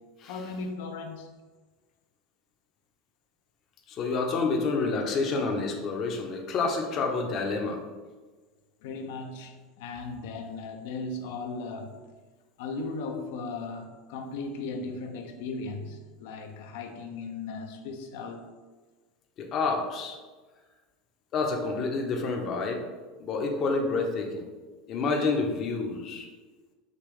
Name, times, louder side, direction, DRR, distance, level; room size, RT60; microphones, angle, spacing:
voice 1, 0.3-1.3 8.8-12.0 12.6-18.4, left 3 dB, 75° left, 5 dB, 0.6 m, -37 dB
voice 2, 3.9-7.8 19.4-20.2 21.3-22.8 23.2-24.4 24.9-26.3, left 4 dB, 40° left, 2 dB, 0.7 m, -28 dB
5.2 x 2.9 x 3.2 m, 1.3 s
supercardioid pair, 125°, 0 cm